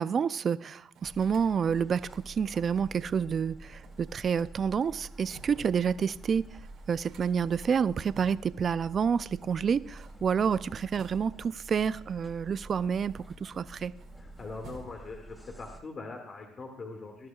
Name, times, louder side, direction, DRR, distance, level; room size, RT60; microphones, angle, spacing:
voice 1, 0.0-6.4 6.9-13.9, right 7 dB, 45° right, 0.4 m, -29 dB
sound 1, 0.9-2.6 3.8-5.8 6.2-6.3 6.4-8.7 9.8-11.6 12.3-13.6 13.9-15.3, right 5 dB, 70° right, 2.4 m, -56 dB
sound 2, 1.0-15.8, right 1 dB, 10° left, 2.9 m, -48 dB
voice 2, 14.2-17.3, left 3 dB, 40° left, 2.0 m, -42 dB
20.5 x 11.5 x 2.4 m
supercardioid pair, 70°, 0 cm